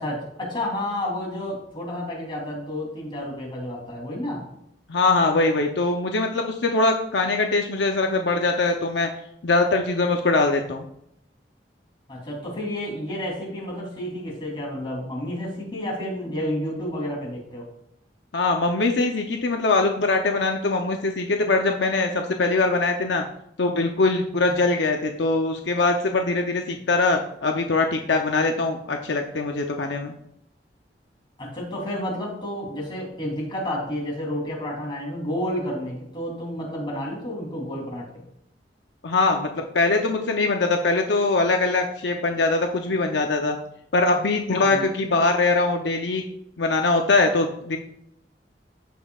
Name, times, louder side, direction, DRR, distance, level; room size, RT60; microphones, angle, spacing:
voice 1, 0.0-4.4 12.1-17.6 31.4-38.2 44.6-44.9, left 1 dB, 30° left, -3 dB, 3.1 m, -30 dB
voice 2, 4.9-9.1 9.4-10.8 18.3-23.2 23.6-30.1 39.0-43.6 43.9-46.2 46.6-47.8, left 3 dB, 80° left, 4 dB, 0.7 m, -22 dB
14.5 x 5.5 x 2.4 m, 0.76 s
head